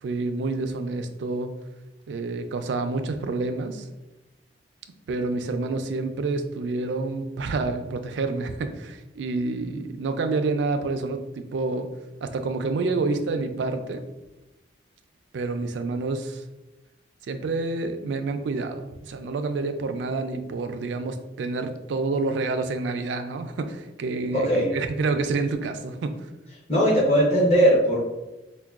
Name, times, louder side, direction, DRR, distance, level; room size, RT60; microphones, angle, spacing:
voice 1, 0.0-1.5 2.1-3.9 5.1-11.9 12.2-14.0 15.3-16.4 17.2-26.1, right 3 dB, 70° right, 8 dB, 0.3 m, -28 dB
voice 2, 24.3-24.7 26.7-28.0, equal, 35° left, -5 dB, 0.7 m, -19 dB
4.5 x 2.2 x 2.3 m, 1.0 s
head